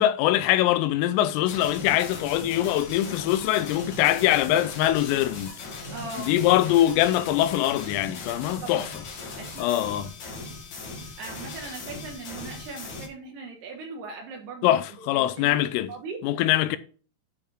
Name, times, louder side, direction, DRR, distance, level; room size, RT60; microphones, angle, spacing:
voice 1, 0.0-5.5 6.2-8.9 9.6-10.1 14.6-15.9 16.2-16.8, left 13 dB, 85° left, 3.3 m, -23 dB
sound 1, 1.5-13.1, left 3 dB, 55° left, 2.2 m, -39 dB
voice 2, 5.9-6.3 8.6-8.9 9.4-9.8 11.0-14.8 15.1-15.6 15.9-16.4, right 4 dB, 70° right, 2.7 m, -40 dB
9.6 x 4.9 x 4.9 m
omnidirectional pair, 5.9 m